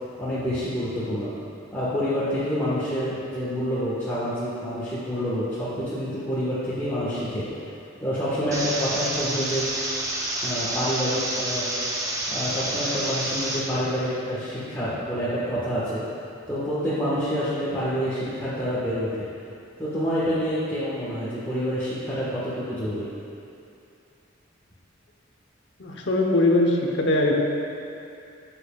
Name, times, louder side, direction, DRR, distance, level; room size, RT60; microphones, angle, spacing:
voice 1, 0.2-1.3 1.7-7.4 8.0-9.7 10.4-11.7 12.3-16.0 16.5-19.1 19.8-23.1, equal, 10° left, -12 dB, 1.4 m, -27 dB
sound 1, 8.5-13.6, right 1 dB, 15° right, 0.8 m, -29 dB
voice 2, 25.8-27.3, left 2 dB, 60° left, 0 dB, 1.0 m, -21 dB
14.0 x 7.2 x 2.4 m, 2.6 s
head